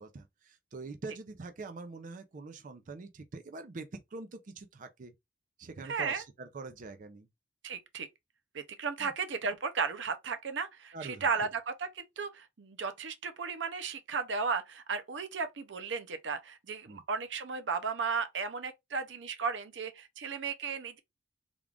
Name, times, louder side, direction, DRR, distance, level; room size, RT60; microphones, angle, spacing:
voice 1, 0.0-5.1 5.6-7.3 9.0-9.1 10.9-11.2 16.9-17.0, right 3 dB, 45° right, 0.4 m, -44 dB
voice 2, 5.8-6.2 7.6-8.1 8.5-21.0, right 5 dB, 90° right, 0.6 m, -35 dB
3.6 x 2.4 x 3.4 m
head